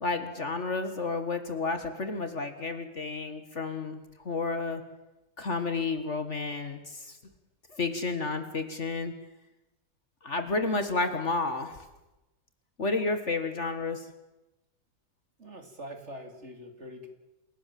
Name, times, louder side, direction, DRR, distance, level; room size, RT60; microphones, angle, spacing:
voice 1, 0.0-4.8 5.4-7.1 7.8-9.1 10.2-11.8 12.8-14.0, left 3 dB, 45° left, 9 dB, 2.0 m, -31 dB
voice 2, 15.4-17.1, equal, 40° right, 6 dB, 3.1 m, -44 dB
28.0 x 17.0 x 7.6 m, 1.0 s
omnidirectional pair, 1.8 m